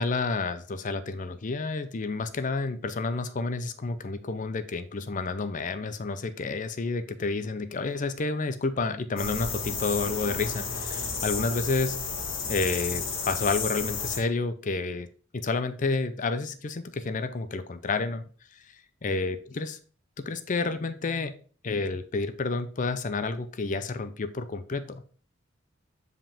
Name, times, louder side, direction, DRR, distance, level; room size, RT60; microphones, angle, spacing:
voice 1, 0.0-12.0 12.5-15.1 15.3-18.6 19.0-19.8 20.2-21.3 21.6-25.0, left 3 dB, 40° left, 10 dB, 0.5 m, -30 dB
sound 1, 9.2-14.2, left 5 dB, 75° left, 1.3 m, -32 dB
5.4 x 5.0 x 3.4 m, 0.41 s
head